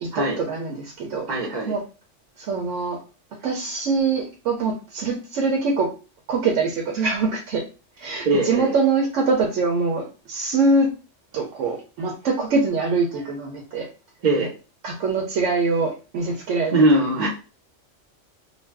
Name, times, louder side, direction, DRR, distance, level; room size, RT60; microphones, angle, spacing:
voice 1, 0.4-1.3 1.7-1.8 2.4-3.0 3.4-5.9 6.3-7.6 8.0-10.9 11.3-13.9 14.8-16.7, right 4 dB, 90° right, 0 dB, 1.0 m, -23 dB
voice 2, 1.3-1.8 8.2-8.8 13.1-13.2 14.2-14.5 16.7-17.3, right 2 dB, 45° right, -1 dB, 0.7 m, -21 dB
2.5 x 2.2 x 3.3 m, 0.33 s
omnidirectional pair, 1.3 m